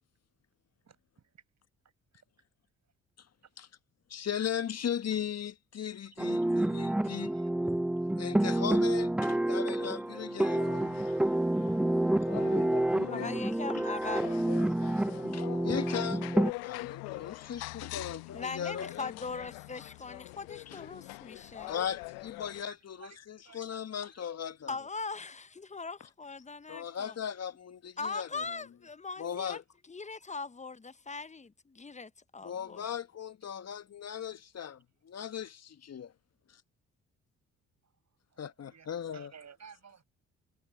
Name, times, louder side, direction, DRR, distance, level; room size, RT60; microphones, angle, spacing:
voice 1, 0.8-1.4 2.1-2.5 3.4-3.5 5.1-5.2 6.4-6.5 7.3-7.5 18.9-19.2 22.6-23.2 23.4-24.2 29.4-29.5 37.8-37.9 38.3-40.0, right 6 dB, 45° right, 6.3 m, -56 dB
voice 2, 4.1-7.3 8.2-10.6 13.7-13.9 15.3-16.3 16.6-19.1 20.7-20.8 21.7-24.7 26.7-28.4 29.2-29.6 32.4-36.1 38.4-39.3, left 8 dB, 45° left, 1.4 m, -38 dB
sound 1, 6.2-16.5, right 1 dB, 5° right, 0.3 m, -29 dB
sound 2, 10.5-22.6, left 27 dB, 75° left, 1.1 m, -43 dB
voice 3, 13.1-14.5 18.3-21.7 24.7-27.2 28.0-29.6 29.9-32.8, left 4 dB, 20° left, 1.0 m, -40 dB
hypercardioid pair, 45°, 37 cm